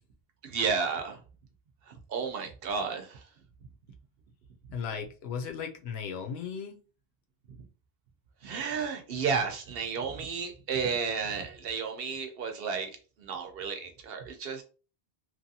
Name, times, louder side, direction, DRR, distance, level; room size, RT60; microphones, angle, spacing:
voice 1, 0.4-1.2 1.9-3.2 8.4-14.6, right 5 dB, 65° right, 0.8 m, -32 dB
voice 2, 4.7-6.8, left 6 dB, 75° left, 0.8 m, -36 dB
2.9 x 2.5 x 2.6 m
omnidirectional pair, 1.1 m